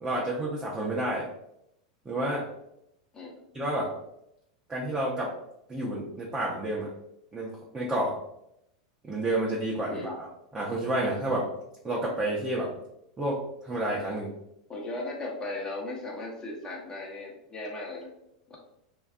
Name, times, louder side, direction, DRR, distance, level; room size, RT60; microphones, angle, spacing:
voice 1, 0.0-1.3 2.1-2.5 3.5-3.9 4.7-5.3 5.7-6.9 7.3-8.1 9.0-10.3 10.5-11.5 11.8-12.7 13.2-14.3, right 1 dB, 15° right, -5 dB, 0.6 m, -30 dB
voice 2, 14.7-18.1 18.5-18.6, left 2 dB, 20° left, -2 dB, 0.8 m, -37 dB
2.5 x 2.3 x 2.4 m, 0.80 s
hypercardioid pair, 100°, 3 cm